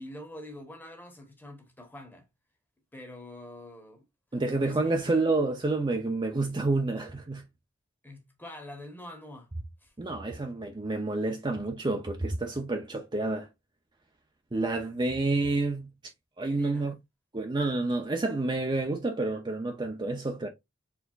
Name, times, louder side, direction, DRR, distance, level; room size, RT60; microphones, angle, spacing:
voice 1, 0.0-2.3 2.9-4.0 4.6-5.1 8.0-9.5 9.8-10.2 16.5-16.9, left 1 dB, 10° left, 1.1 m, -45 dB
voice 2, 4.3-7.4 10.0-13.5 14.5-15.9 16.4-16.9 17.3-20.5, right 2 dB, 25° right, 0.6 m, -29 dB
4.5 x 3.4 x 2.4 m
head